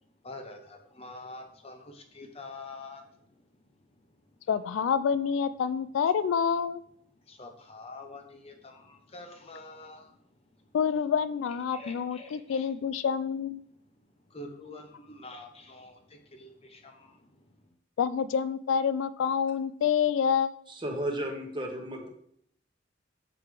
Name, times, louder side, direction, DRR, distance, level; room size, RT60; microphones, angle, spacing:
voice 1, 0.2-3.0 7.3-10.1 11.7-12.6 14.3-15.9 16.4-16.9, left 2 dB, 30° left, 5 dB, 0.7 m, -45 dB
voice 2, 4.5-6.8 10.7-13.6 18.0-20.6, left 7 dB, 85° left, 14 dB, 0.3 m, -27 dB
voice 3, 20.8-22.1, right 1 dB, 25° right, 2 dB, 1.1 m, -33 dB
6.7 x 4.9 x 3.3 m, 0.65 s
head